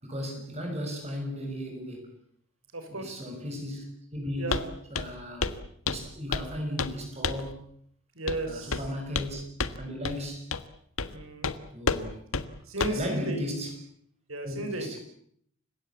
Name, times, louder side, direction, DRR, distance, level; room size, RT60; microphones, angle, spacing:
voice 1, 0.0-2.1 2.9-4.6 4.9-5.5 5.8-7.6 8.5-9.4 9.8-10.5 11.7-12.2 12.9-13.7 14.4-15.0, equal, 30° right, 3 dB, 6.3 m, -36 dB
voice 2, 2.7-3.3 4.3-4.6 8.1-8.9 11.0-11.5 12.6-13.6 14.3-15.0, right 1 dB, 85° right, 7 dB, 6.1 m, -35 dB
Walk footsteps, 4.5-4.7 4.9-5.2 5.4-5.6 5.9-6.5 6.8-7.0 7.2-7.5 8.3-8.4 8.7-9.3 9.6-9.8 10.0-10.2 10.5-10.7 11.0-11.1 11.4-11.6 11.9-12.0 12.3-12.5 12.8-13.0, left 4 dB, 85° left, 1.6 m, -30 dB
29.5 x 17.0 x 8.5 m, 0.66 s
head